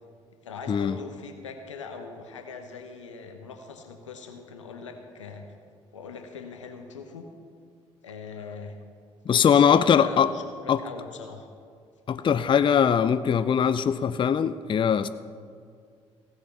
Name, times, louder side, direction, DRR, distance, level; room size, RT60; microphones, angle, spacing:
voice 1, 0.4-5.4 5.9-7.3 8.0-8.8 9.3-11.5, left 5 dB, 90° left, 5 dB, 1.0 m, -41 dB
voice 2, 9.3-10.3 10.7-10.8 12.1-15.1, left 7 dB, 35° left, 13 dB, 0.5 m, -21 dB
16.5 x 6.5 x 7.0 m, 2.2 s
hypercardioid pair, 50°, 15 cm